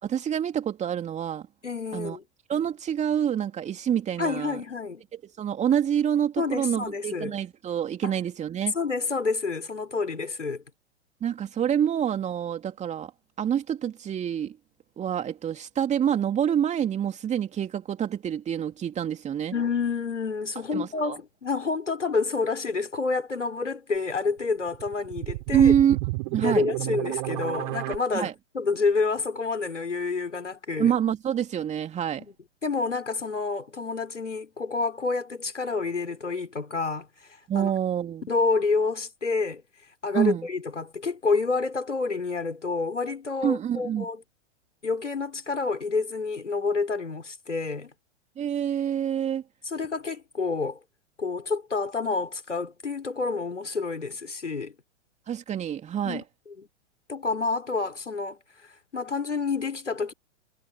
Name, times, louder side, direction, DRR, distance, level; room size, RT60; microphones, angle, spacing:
voice 1, 0.0-1.5 1.9-2.2 2.5-4.6 5.4-8.7 11.2-13.1 13.4-14.6 15.0-19.5 20.7-21.2 25.5-26.0 26.3-26.6 28.1-28.3 30.8-32.2 37.5-38.3 40.1-40.5 43.4-44.1 48.4-49.4 55.3-56.2, right 9 dB, 20° right, 2.6 m, -26 dB
voice 2, 1.6-2.2 4.2-5.0 6.4-7.3 8.0-8.1 8.7-10.6 19.5-25.7 26.4-28.3 28.5-30.9 32.6-37.1 37.5-37.7 38.3-39.6 40.0-44.2 44.8-47.9 49.7-50.8 51.2-54.7 56.0-56.2 57.1-58.4 58.9-60.1, left 4 dB, 80° left, 3.3 m, -28 dB
sound 1, 24.7-28.0, right 25 dB, 40° right, 3.6 m, -31 dB
figure-of-eight pair, 100°, 36 cm